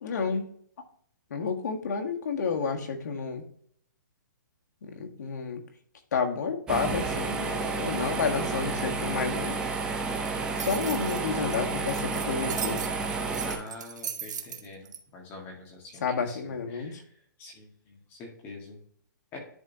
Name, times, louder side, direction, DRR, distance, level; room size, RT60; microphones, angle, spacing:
voice 1, 0.0-0.5 1.3-3.4 4.8-5.6 6.1-9.6 10.6-12.8 16.0-17.0, left 5 dB, 60° left, 3 dB, 1.5 m, -30 dB
sound 1, 6.7-13.6, right 4 dB, 10° right, 0.7 m, -31 dB
sound 2, 10.2-15.0, right 8 dB, 60° right, 0.9 m, -38 dB
voice 2, 13.4-16.0 16.3-16.4 16.7-16.9 17.4-18.8 19.3-19.4, left 3 dB, 20° left, 0 dB, 1.7 m, -45 dB
10.5 x 3.7 x 2.8 m, 0.62 s
hypercardioid pair, 165°, 11 cm